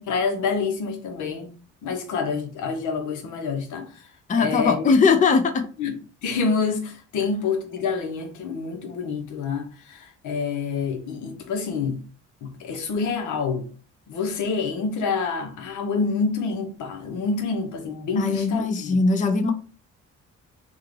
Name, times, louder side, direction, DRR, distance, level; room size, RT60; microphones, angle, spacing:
voice 1, 0.0-1.5 1.8-4.0 4.3-4.9 5.8-12.0 12.4-13.7 14.1-19.0, left 5 dB, 80° left, 0.9 m, -27 dB
voice 2, 4.3-5.7 18.2-19.5, left 4 dB, 25° left, 0.5 m, -20 dB
3.6 x 2.3 x 3.2 m
cardioid pair, 90°, 30 cm